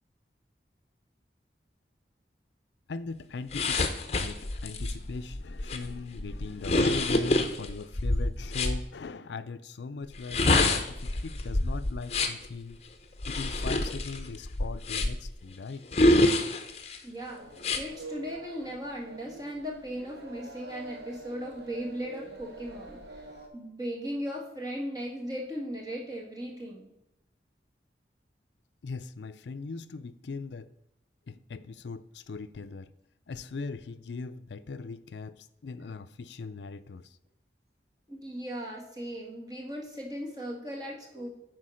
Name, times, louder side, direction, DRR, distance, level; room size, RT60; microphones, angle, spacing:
voice 1, 2.9-12.8 13.3-15.8 28.8-30.7 31.3-32.9 33.3-37.1, left 4 dB, 85° left, 0.5 m, -39 dB
sound 1, 3.5-8.8 10.1-12.5 13.2-15.3 15.9-17.0 17.6-17.8, left 2 dB, 35° left, 0.7 m, -27 dB
voice 2, 17.0-17.5 17.8-26.9 38.1-41.3, equal, 20° right, 1.7 m, -37 dB
sound 2, 17.3-23.5, right 2 dB, 65° right, 1.4 m, -46 dB
9.9 x 4.6 x 6.3 m
head